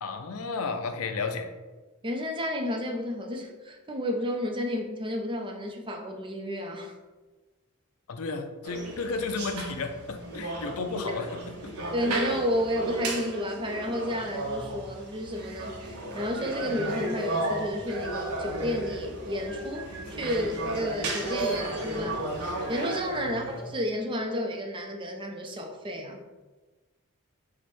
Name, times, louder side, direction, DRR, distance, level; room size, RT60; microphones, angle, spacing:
voice 1, 0.0-1.5 8.1-11.7 23.2-23.5, left 4 dB, 70° left, 6 dB, 0.5 m, -33 dB
voice 2, 2.0-7.0 11.9-22.2 22.7-26.2, equal, 20° right, 2 dB, 0.5 m, -31 dB
sound 1, 8.6-23.8, right 2 dB, 75° right, 0.8 m, -34 dB
4.6 x 2.1 x 4.2 m, 1.2 s
head